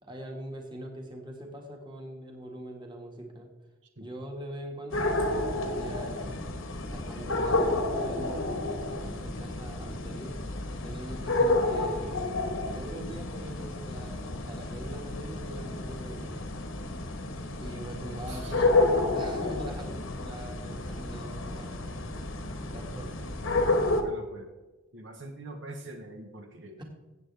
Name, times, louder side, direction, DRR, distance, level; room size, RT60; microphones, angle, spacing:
voice 1, 0.0-3.5 4.0-6.3 6.8-10.4 10.8-16.4 17.5-22.0 22.7-23.3 26.8-26.9, right 1 dB, 20° right, 1 dB, 1.8 m, -42 dB
sound 1, 4.9-24.0, left 2 dB, 75° left, 1.3 m, -30 dB
voice 2, 18.3-18.7 24.0-24.5 24.9-26.8, right 2 dB, 60° right, 4 dB, 1.2 m, -44 dB
15.5 x 7.9 x 3.4 m, 1.2 s
head